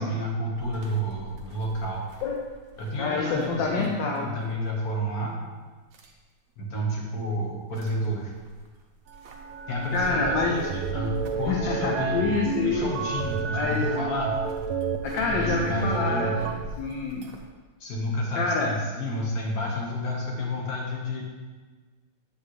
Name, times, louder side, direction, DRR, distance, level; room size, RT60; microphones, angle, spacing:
voice 1, 0.0-2.0 2.8-3.9 4.2-5.3 6.6-8.3 9.7-12.2 12.6-14.4 15.1-16.4 17.8-21.2, equal, 45° left, -2 dB, 1.7 m, -30 dB
sound 1, 0.5-4.2 4.5-4.6 5.9-6.1 7.7-8.0 8.4-17.5, right 2 dB, 60° right, 0.9 m, -42 dB
voice 2, 3.0-4.3 9.9-10.6 11.5-12.9 13.5-13.8 15.0-16.3 16.8-17.3 18.4-18.7, left 4 dB, 65° left, -1 dB, 1.3 m, -27 dB
sound 2, 9.1-16.5, right 6 dB, 80° right, 1.4 m, -31 dB
8.4 x 6.9 x 3.2 m, 1.4 s
omnidirectional pair, 2.4 m